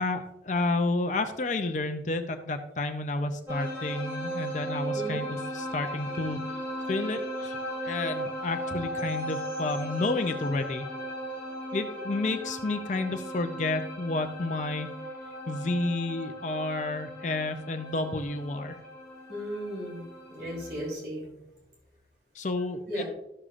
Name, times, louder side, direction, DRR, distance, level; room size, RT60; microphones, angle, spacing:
voice 1, 0.0-6.5 6.9-7.6 7.8-10.9 11.7-14.9 15.5-18.8 22.3-23.0, left 2 dB, 45° left, 7 dB, 0.5 m, -30 dB
sound 1, 3.5-20.9, equal, 15° right, 2.9 m, -37 dB
voice 2, 19.3-20.0 20.3-21.3 22.9-23.0, equal, 75° right, -2 dB, 3.2 m, -35 dB
13.5 x 6.7 x 2.5 m, 0.83 s
head